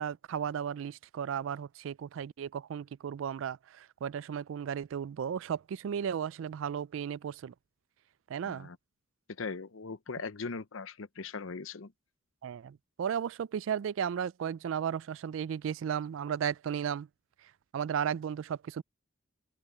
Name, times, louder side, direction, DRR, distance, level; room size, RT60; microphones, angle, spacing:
voice 1, 0.0-7.5 8.3-8.7 12.4-17.1 17.7-18.8, right 8 dB, 75° right, 0.3 m, -35 dB
voice 2, 8.4-8.8 9.4-11.9, left 4 dB, 80° left, 0.8 m, -39 dB
open air
head